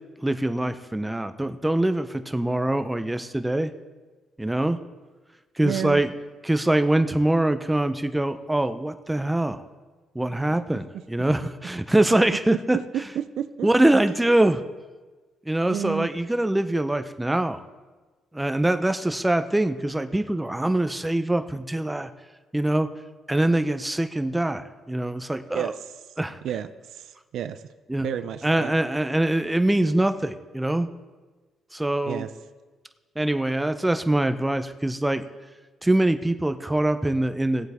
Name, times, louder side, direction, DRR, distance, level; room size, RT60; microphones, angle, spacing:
voice 1, 0.2-3.7 4.4-4.8 5.6-6.1 6.4-9.6 10.1-12.8 13.6-14.6 15.5-17.6 18.3-22.1 22.5-22.9 23.3-25.7 26.2-26.4 27.9-28.1 28.4-30.9 31.7-32.3 33.2-35.2 35.8-37.7, right 1 dB, 10° right, 9 dB, 0.6 m, -23 dB
voice 2, 5.6-6.0 12.7-13.7 15.7-16.1 25.5-25.7 26.4-26.7 26.9-27.0 27.3-27.6 28.0-28.7 32.1-32.3, right 10 dB, 75° right, 11 dB, 0.5 m, -30 dB
18.0 x 7.8 x 3.5 m, 1.3 s
cardioid pair, 90°, 0 cm